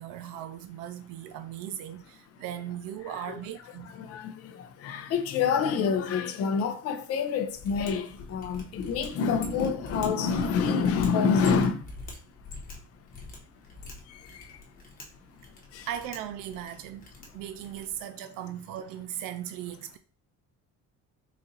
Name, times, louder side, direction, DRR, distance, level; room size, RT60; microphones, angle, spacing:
voice 1, 0.0-3.9 15.9-17.0 17.3-20.0, right 11 dB, 85° right, 0.5 m, -38 dB
voice 2, 3.0-3.4 3.8-11.9 14.1-14.6 15.7-15.9, left 6 dB, 50° left, 0.6 m, -27 dB
Mechanisms, 7.5-18.0, left 3 dB, 25° left, 1.0 m, -44 dB
4.1 x 2.5 x 3.9 m
cardioid pair, 180°, 32 cm